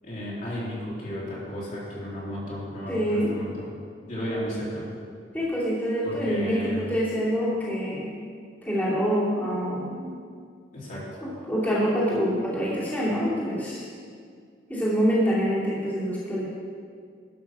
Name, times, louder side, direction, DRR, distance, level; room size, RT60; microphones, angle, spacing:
voice 1, 0.0-3.7 4.1-4.9 6.0-6.8 10.7-11.1, equal, 45° left, -7 dB, 3.1 m, -33 dB
voice 2, 2.9-3.3 5.3-8.1 8.6-10.1 11.2-13.8 14.7-16.4, equal, 10° left, -9 dB, 2.6 m, -26 dB
12.0 x 6.2 x 6.1 m, 2.1 s
head